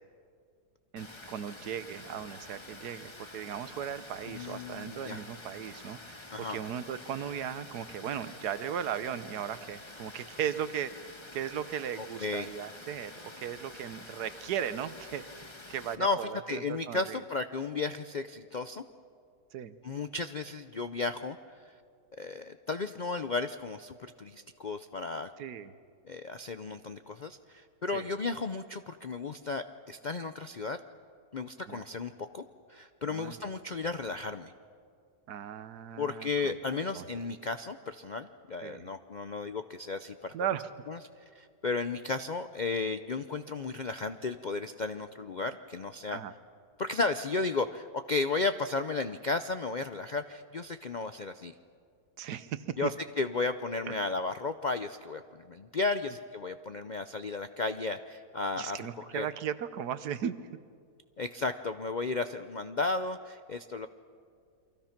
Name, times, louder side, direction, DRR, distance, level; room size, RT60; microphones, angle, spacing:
voice 1, 0.9-10.9 11.3-15.2 15.7-17.2 19.5-19.8 25.4-25.7 27.9-28.1 31.7-31.8 33.1-33.5 35.3-37.1 38.6-38.9 40.3-40.7 46.1-46.3 52.2-52.9 53.8-53.9 58.6-60.3, right 9 dB, 80° right, 13 dB, 1.4 m, -37 dB
Water, 1.0-15.9, left 2 dB, 20° left, 1.2 m, -48 dB
voice 2, 4.3-5.2 6.3-6.6 12.0-12.5 16.0-18.8 19.8-21.4 21.6-21.7 22.2-25.3 26.1-30.8 31.3-32.4 32.7-34.5 36.0-40.3 40.9-41.0 41.3-46.2 46.8-51.5 52.8-59.3 61.2-63.9, left 3 dB, 60° left, 9 dB, 0.4 m, -34 dB
29.0 x 24.0 x 5.9 m, 2.2 s
omnidirectional pair, 1.7 m